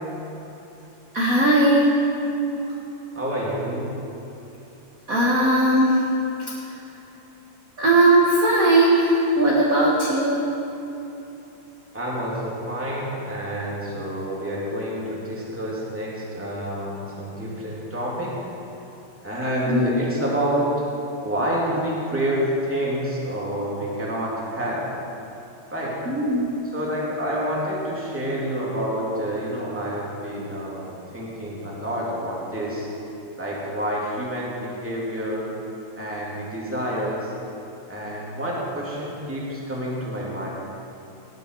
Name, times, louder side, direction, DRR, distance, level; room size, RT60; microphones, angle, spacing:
voice 1, 1.1-1.9 5.1-6.1 6.6-6.8 7.8-10.5 19.7-19.9 26.0-26.5, right 1 dB, 35° right, -5 dB, 1.5 m, -18 dB
voice 2, 3.1-4.0 11.9-18.5 19.2-20.9 21.2-24.9 25.7-26.0 26.7-32.9 33.4-35.5 36.0-37.3 37.9-40.5, equal, 5° right, -6 dB, 2.2 m, -28 dB
17.5 x 9.7 x 4.6 m, 3.0 s
omnidirectional pair, 3.4 m